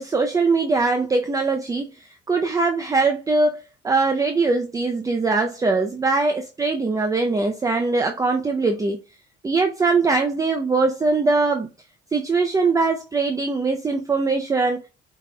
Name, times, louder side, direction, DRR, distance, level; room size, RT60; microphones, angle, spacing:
voice 1, 0.0-9.0 9.4-11.7 12.1-14.8, right 3 dB, 20° right, 0.6 m, -21 dB
5.4 x 4.2 x 2.3 m
cardioid pair, 110°, 17 cm